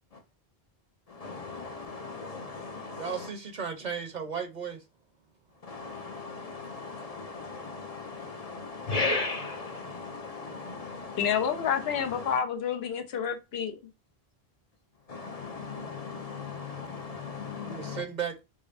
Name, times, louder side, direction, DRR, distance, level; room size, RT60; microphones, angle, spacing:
voice 1, 1.1-3.3 5.6-12.4 15.1-18.0, left 3 dB, 45° left, 0.6 m, -37 dB
voice 2, 3.0-4.8 17.6-18.4, right 6 dB, 50° right, 0.7 m, -35 dB
voice 3, 11.2-13.8, left 8 dB, 80° left, 0.9 m, -29 dB
5.2 x 2.0 x 2.4 m
omnidirectional pair, 1.0 m